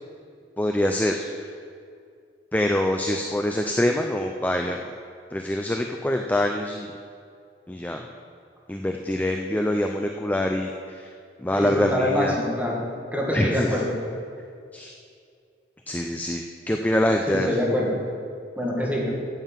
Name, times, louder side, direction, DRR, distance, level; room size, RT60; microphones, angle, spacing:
voice 1, 0.6-1.5 2.5-4.8 5.3-6.9 7.7-8.1 8.7-11.1 11.4-12.3 13.3-13.8 14.7-14.9 15.9-17.5, left 1 dB, 10° left, 3 dB, 0.4 m, -25 dB
voice 2, 11.5-12.8 13.1-14.0 17.3-18.0 18.6-19.2, left 1 dB, 10° right, -3 dB, 1.9 m, -25 dB
9.1 x 7.7 x 7.3 m, 2.3 s
head